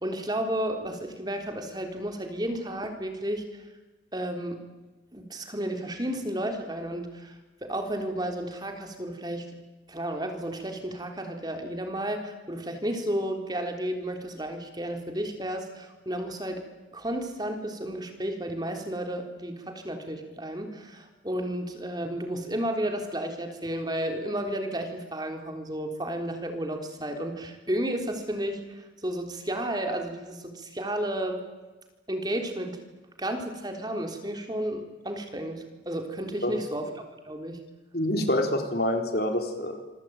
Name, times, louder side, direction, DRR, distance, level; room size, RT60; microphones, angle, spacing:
voice 1, 0.0-3.6 4.1-4.6 5.1-9.5 9.9-16.6 16.9-31.4 32.1-32.8 33.2-36.9 37.2-37.6, right 1 dB, 20° right, 4 dB, 3.7 m, -32 dB
voice 2, 37.9-39.8, left 1 dB, 55° left, 5 dB, 4.0 m, -26 dB
27.0 x 23.5 x 9.1 m, 1.2 s
head